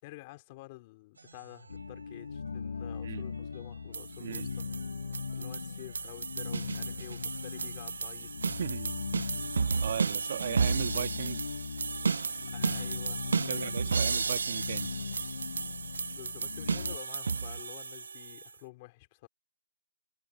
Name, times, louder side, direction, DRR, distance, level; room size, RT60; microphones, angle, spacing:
voice 1, 0.0-4.7 5.3-8.4 12.5-14.0 16.1-19.3, left 22 dB, 25° left, 3.8 m, -49 dB
sound 1, 1.1-8.3, right 3 dB, 85° right, 6.1 m, -59 dB
sound 2, 1.7-17.0, left 5 dB, 60° left, 5.7 m, -40 dB
sound 3, 3.9-18.5, right 5 dB, 65° right, 0.3 m, -33 dB
voice 2, 8.6-9.0 9.8-11.4 13.5-14.9 16.1-16.2, right 8 dB, 40° right, 1.8 m, -37 dB
hypercardioid pair, 160°, 0 cm